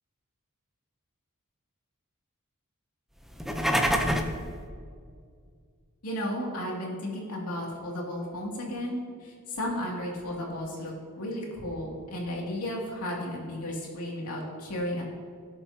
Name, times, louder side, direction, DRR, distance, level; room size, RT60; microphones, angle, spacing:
sound 1, 3.3-4.4, equal, ahead, 0.6 m, -26 dB
voice 1, 6.0-15.0, left 1 dB, 85° left, -2 dB, 2.4 m, -34 dB
17.5 x 6.9 x 2.8 m, 2.1 s
head